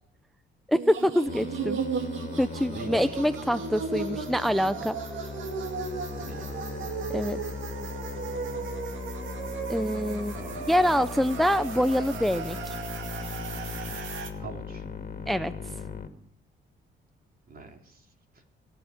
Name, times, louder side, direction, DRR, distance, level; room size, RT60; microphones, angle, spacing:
voice 1, 0.7-1.8 2.4-5.0 7.1-7.4 9.7-10.4 10.7-12.8 15.3-15.5, equal, ahead, 13 dB, 0.6 m, -25 dB
sound 1, 0.7-14.3, right 6 dB, 80° right, 2.3 m, -36 dB
Musical instrument, 1.3-16.1, left 5 dB, 45° left, 2.2 m, -38 dB
voice 2, 2.7-3.2 6.2-6.7 10.3-10.7 14.4-14.9 17.5-18.4, right 3 dB, 45° right, 3 dB, 3.5 m, -43 dB
24.0 x 8.0 x 5.8 m, 0.68 s
cardioid pair, 90°, 20 cm